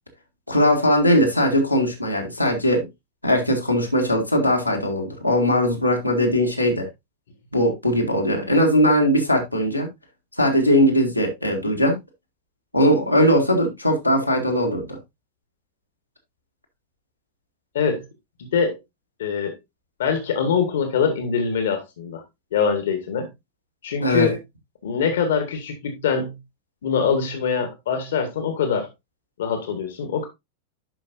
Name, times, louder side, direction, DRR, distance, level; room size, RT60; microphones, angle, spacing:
voice 1, 0.5-2.9 3.2-6.9 7.5-9.9 10.4-12.0 12.7-15.0 24.0-24.3, equal, 90° left, 1.9 m, -20 dB
voice 2, 19.2-19.6 20.0-22.2 22.5-23.3 23.8-24.4 24.8-26.4 26.8-28.9 29.4-30.3, left 6 dB, 60° left, 1.5 m, -23 dB
11.0 x 5.2 x 2.6 m
figure-of-eight pair, 90°, 0 cm